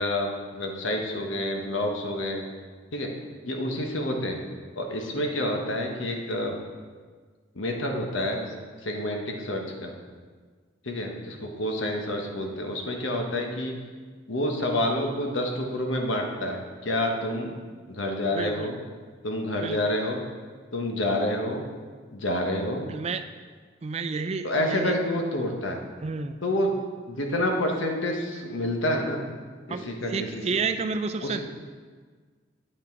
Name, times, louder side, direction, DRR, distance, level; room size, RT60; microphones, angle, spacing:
voice 1, 0.0-2.4 2.9-3.1 3.5-4.4 4.8-6.6 7.5-8.5 8.8-9.9 10.8-13.7 14.3-17.6 17.9-18.8 19.2-20.2 20.7-21.6 22.1-22.9 24.4-25.8 26.4-26.7 27.1-29.2 29.7-30.3 30.5-30.6 31.2-31.4, left 1 dB, 90° left, 2 dB, 1.2 m, -28 dB
voice 2, 18.3-18.7 19.6-19.8 22.9-23.2 23.8-24.9 26.0-26.4 26.8-26.9 29.7-31.4, right 4 dB, 35° right, 9 dB, 0.3 m, -30 dB
8.9 x 6.0 x 4.5 m, 1.5 s
head